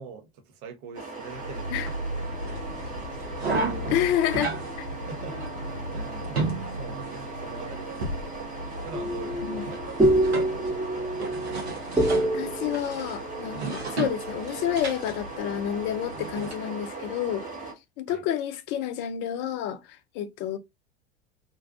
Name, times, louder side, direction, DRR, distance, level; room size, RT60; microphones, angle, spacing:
voice 1, 0.0-2.0 2.4-3.7 5.1-5.3 5.9-6.5 6.8-8.5 8.8-10.6 10.9-11.7 18.1-18.2, right 5 dB, 50° right, 0.7 m, -44 dB
sound 1, 0.9-17.7, right 3 dB, 25° right, 1.0 m, -39 dB
sound 2, 1.3-16.5, right 2 dB, 85° right, 0.9 m, -34 dB
voice 2, 3.9-4.9 9.4-9.6 12.3-17.4 18.0-20.6, left 10 dB, 35° left, 0.4 m, -29 dB
sound 3, 8.9-14.5, right 1 dB, 10° right, 0.6 m, -27 dB
2.5 x 2.2 x 2.3 m
figure-of-eight pair, 80°, 32 cm